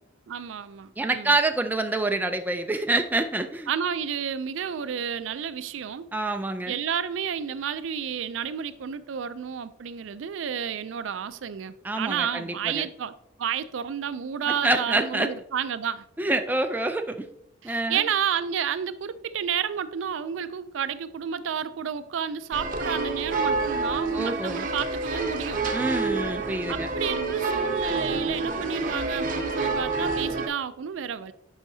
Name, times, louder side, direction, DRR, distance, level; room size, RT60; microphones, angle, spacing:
voice 1, 0.3-1.3 3.7-6.1 6.7-13.1 13.4-16.0 17.6-25.6 26.7-31.3, right 8 dB, 80° right, 0.4 m, -31 dB
voice 2, 1.0-3.7 6.1-6.7 11.8-12.9 14.5-15.3 16.2-17.3 17.6-18.1 24.1-24.7 25.7-26.9, right 2 dB, 10° right, 0.4 m, -27 dB
sound 1, 22.5-30.5, right 3 dB, 45° right, 0.8 m, -28 dB
8.8 x 5.7 x 2.7 m
head